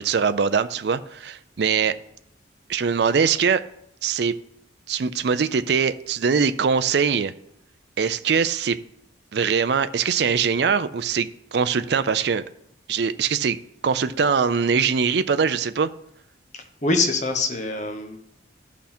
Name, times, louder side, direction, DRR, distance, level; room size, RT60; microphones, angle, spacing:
voice 1, 0.0-1.9 2.7-3.6 4.0-4.3 4.9-7.3 8.0-8.8 9.3-12.4 12.9-13.6 13.8-15.9, right 6 dB, 60° right, 0.4 m, -22 dB
voice 2, 16.5-18.2, left 3 dB, 40° left, 1.1 m, -24 dB
12.5 x 5.9 x 4.3 m
head